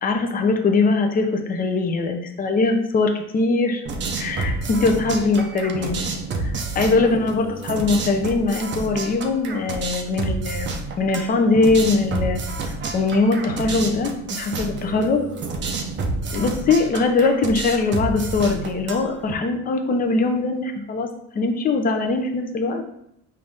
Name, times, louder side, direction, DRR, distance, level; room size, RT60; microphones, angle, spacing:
voice 1, 0.0-3.8 4.2-6.0 6.4-10.7 11.0-12.4 12.6-15.2 16.3-21.1 21.3-22.8, left 3 dB, 30° left, 3 dB, 0.5 m, -21 dB
sound 1, 3.9-19.3, right 3 dB, 35° right, 0.5 m, -29 dB
5.6 x 2.6 x 3.4 m, 0.75 s
cardioid pair, 150°, 31 cm